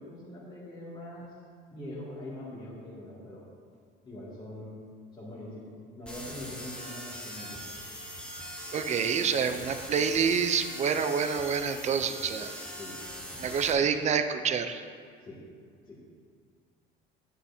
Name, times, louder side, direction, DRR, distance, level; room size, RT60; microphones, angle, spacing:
voice 1, 0.0-1.4 1.7-3.5 4.0-4.8 5.1-7.6 12.8-13.0 15.2-15.4 15.8-16.1, left 1 dB, 25° left, -9 dB, 2.3 m, -43 dB
sound 1, 6.1-13.7, equal, 5° left, 1.1 m, -41 dB
voice 2, 8.7-12.5 13.4-14.8, right 6 dB, 35° right, 9 dB, 0.6 m, -27 dB
11.0 x 10.0 x 2.8 m, 2.1 s
cardioid pair, 135°, 21 cm